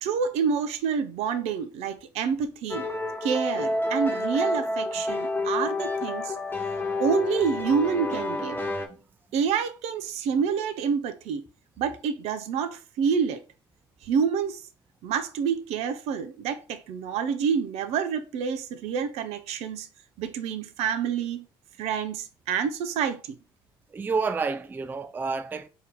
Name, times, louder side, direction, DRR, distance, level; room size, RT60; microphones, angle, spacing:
voice 1, 0.0-2.9 3.2-6.3 7.0-8.6 9.3-11.4 11.8-13.4 14.0-14.6 15.0-19.9 20.2-21.4 21.8-23.4, right 6 dB, 60° right, 0.6 m, -28 dB
sound 1, 2.7-8.9, left 2 dB, 15° left, 0.9 m, -29 dB
voice 2, 23.9-25.7, right 4 dB, 15° right, 0.3 m, -29 dB
3.5 x 2.8 x 3.6 m
hypercardioid pair, 55°, 12 cm